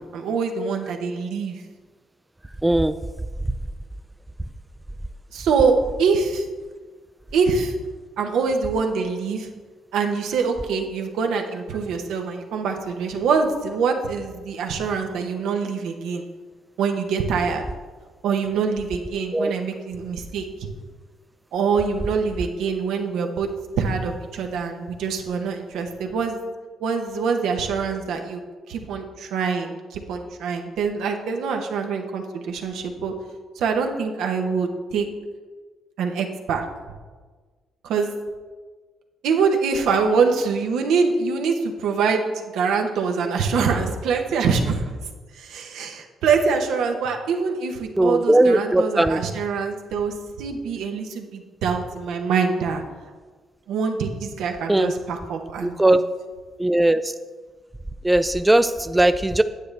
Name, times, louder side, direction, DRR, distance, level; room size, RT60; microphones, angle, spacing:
voice 1, 0.0-1.6 5.3-6.5 7.3-7.7 8.2-9.5 9.9-16.2 16.8-17.6 18.2-20.4 21.5-23.5 23.8-26.4 26.8-28.4 28.7-33.1 33.6-35.1 36.0-36.7 37.8-38.1 39.2-44.9 45.4-52.8 53.7-56.0, right 5 dB, 85° right, 3 dB, 1.0 m, -24 dB
voice 2, 2.6-2.9 19.3-19.5 48.0-49.2 54.7-54.9 55.6-56.0 56.6-57.1 58.0-59.4, right 1 dB, 10° right, 11 dB, 0.3 m, -18 dB
9.5 x 8.1 x 3.4 m, 1.4 s
cardioid pair, 90°, 0 cm